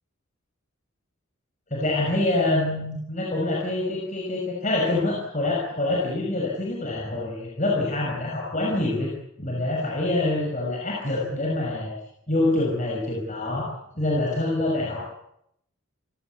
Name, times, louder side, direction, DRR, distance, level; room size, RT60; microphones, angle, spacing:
voice 1, 1.7-9.1 9.4-11.9 12.3-13.7 14.0-15.1, left 2 dB, 35° left, -3 dB, 5.9 m, -25 dB
27.5 x 18.0 x 8.3 m, 0.77 s
head